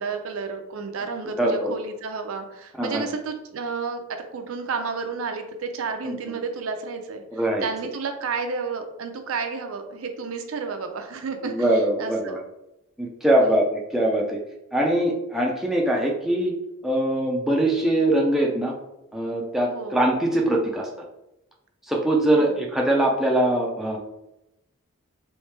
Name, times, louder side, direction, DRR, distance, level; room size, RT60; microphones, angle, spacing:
voice 1, 0.0-7.2 7.6-11.7 12.0-12.4 13.4-13.6 19.7-20.0 22.4-22.5, right 4 dB, 80° right, 5 dB, 0.5 m, -31 dB
voice 2, 1.4-1.7 2.8-3.0 6.0-6.1 7.3-7.6 11.4-12.4 13.0-14.4 14.7-16.5 16.8-18.7 19.1-20.9 21.9-24.0, right 1 dB, ahead, -2 dB, 0.4 m, -22 dB
3.2 x 3.1 x 3.2 m, 0.90 s
head